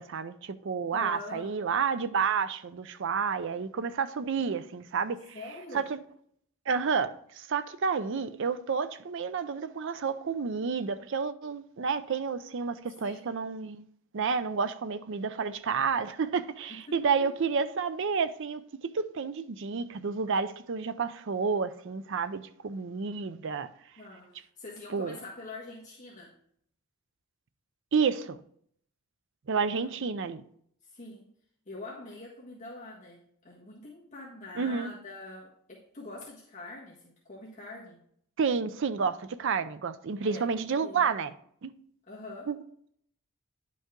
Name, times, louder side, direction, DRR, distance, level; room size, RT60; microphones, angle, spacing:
voice 1, 0.0-5.2 5.7-6.0 6.7-13.9 14.1-18.6 18.9-23.7 24.9-25.2 27.9-28.4 29.5-30.4 34.6-34.9 38.4-41.3 41.6-41.7 42.5-42.6, right 5 dB, 55° right, 0.5 m, -30 dB
voice 2, 0.9-1.6 5.3-5.9 13.0-13.3 16.7-17.3 24.0-26.3 29.8-30.1 30.8-31.3 31.6-38.0 40.2-40.5 40.7-41.1 42.1-42.5, left 2 dB, 35° left, 1.5 m, -44 dB
10.0 x 5.4 x 3.7 m
head